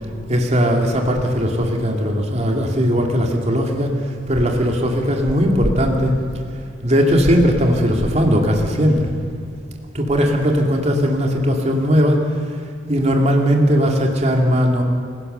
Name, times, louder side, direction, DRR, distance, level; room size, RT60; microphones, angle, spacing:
voice 1, 0.3-6.1 6.8-9.0 9.9-12.2 12.9-14.8, equal, 35° right, 1 dB, 2.7 m, -18 dB
28.0 x 17.0 x 6.9 m, 2.4 s
head